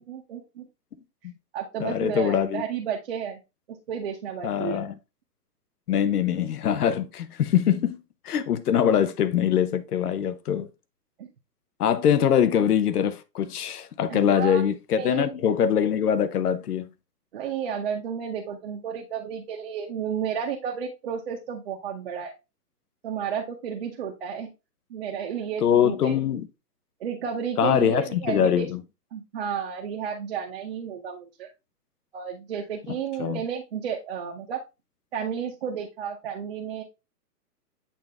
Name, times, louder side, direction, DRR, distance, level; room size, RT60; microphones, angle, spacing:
voice 1, 0.1-0.7 1.5-3.4 3.9-4.8 11.2-11.3 14.1-14.6 15.0-15.3 17.3-22.3 23.0-24.5 24.9-26.1 27.0-28.7 29.1-31.5 32.1-34.6 35.1-36.8, right 7 dB, 35° right, 0.9 m, -32 dB
voice 2, 1.8-2.6 4.4-4.9 5.9-10.7 11.8-16.9 25.6-26.5 27.6-28.8 33.2-33.4, left 9 dB, 65° left, 0.9 m, -23 dB
8.7 x 3.6 x 3.4 m
hypercardioid pair, 160°, 49 cm